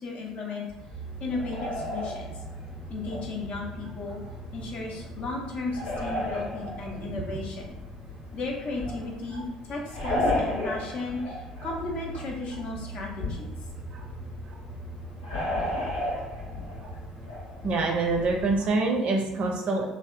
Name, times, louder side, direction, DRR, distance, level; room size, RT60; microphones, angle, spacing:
voice 1, 0.0-0.7 1.2-2.3 2.9-4.2 4.5-7.8 8.3-13.5, left 3 dB, 50° left, 0 dB, 0.6 m, -35 dB
sound 1, 0.7-18.7, left 1 dB, 80° left, 0.9 m, -35 dB
sound 2, 0.9-18.8, right 3 dB, ahead, 0.5 m, -44 dB
voice 2, 7.0-7.4 9.3-9.4 13.9-14.0 14.4-14.6 15.8-15.9 16.8-16.9 17.6-19.9, right 3 dB, 50° right, 1 dB, 0.5 m, -26 dB
2.7 x 2.0 x 2.4 m, 0.96 s
figure-of-eight pair, 55°, 3 cm